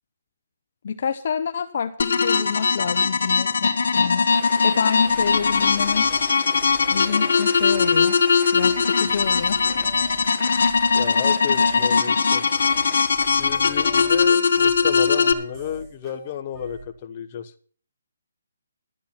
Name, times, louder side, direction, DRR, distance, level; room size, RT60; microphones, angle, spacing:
voice 1, 0.8-4.3 4.6-6.1 6.9-8.2 8.5-9.6, left 7 dB, 50° left, 8 dB, 0.9 m, -28 dB
sound 1, 2.0-15.3, left 5 dB, 70° left, 1.5 m, -20 dB
Data and static clip, 4.3-13.5, left 2 dB, 5° left, 1.6 m, -44 dB
sound 2, 5.0-16.9, right 2 dB, 15° right, 3.6 m, -44 dB
voice 2, 10.9-12.4 13.4-17.5, left 9 dB, 30° left, 9 dB, 1.2 m, -31 dB
12.5 x 10.5 x 6.0 m, 0.43 s
hypercardioid pair, 160°, 0 cm